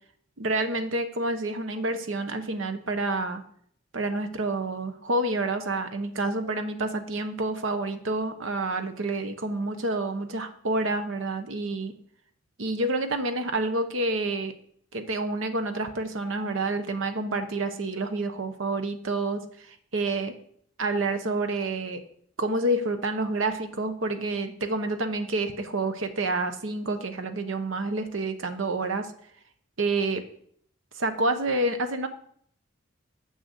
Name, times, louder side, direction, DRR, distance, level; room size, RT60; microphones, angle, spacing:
voice 1, 0.4-3.4 3.9-11.9 12.6-14.5 14.9-19.4 19.7-20.3 20.8-22.0 22.4-29.1 29.8-30.2 31.0-32.1, right 2 dB, 75° right, 8 dB, 0.9 m, -28 dB
6.7 x 6.3 x 6.6 m, 0.64 s
head